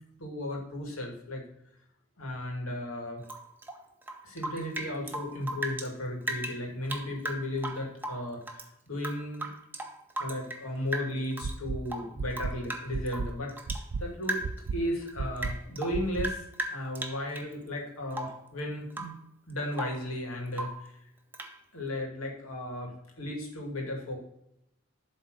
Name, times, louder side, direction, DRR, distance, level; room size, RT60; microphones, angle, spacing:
voice 1, 0.2-1.4 2.2-3.2 4.2-9.5 10.2-13.5 14.0-14.4 14.7-16.4 16.7-19.1 19.5-21.0 21.7-22.9 23.2-24.2, left 1 dB, 90° left, 0 dB, 2.4 m, -35 dB
Rain / Drip, 3.2-5.9 6.2-8.7 9.0-10.7 10.9-11.6 11.9-13.9 14.2-14.7 15.0-17.5 18.1-18.5 18.9-19.2 19.5-20.1 20.5-20.9 21.3-21.6, right 1 dB, 10° right, 0.7 m, -37 dB
sound 1, 11.4-11.8 12.2-12.5 12.9-13.3 13.7-14.0 14.4-14.8 15.2-15.5 15.9-16.3, right 4 dB, 55° right, 0.4 m, -32 dB
7.8 x 3.8 x 6.5 m, 0.79 s
head